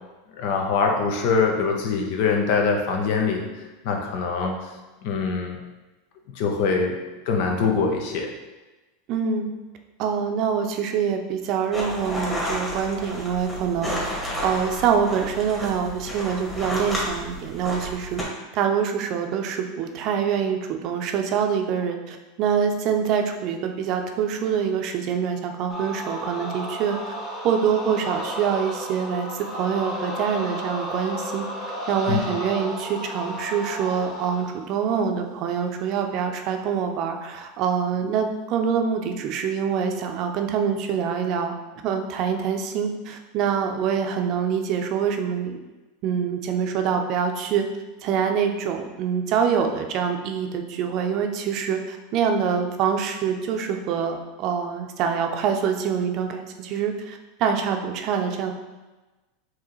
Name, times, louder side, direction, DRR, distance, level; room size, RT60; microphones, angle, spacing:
voice 1, 0.4-3.4 3.8-4.6 5.0-5.6 6.4-7.0 7.3-8.3 32.1-32.2, left 5 dB, 65° left, 2 dB, 0.7 m, -23 dB
voice 2, 9.1-9.5 10.0-18.3 18.5-27.1 27.4-31.5 31.9-41.5 41.8-45.6 46.0-47.6 48.0-58.5, right 7 dB, 50° right, 4 dB, 0.5 m, -25 dB
sound 1, 11.7-18.2, equal, 15° left, 1.5 m, -31 dB
sound 2, 25.7-34.6, equal, 30° left, 1.0 m, -33 dB
4.7 x 2.9 x 3.1 m, 1.1 s
hypercardioid pair, 105°, 0 cm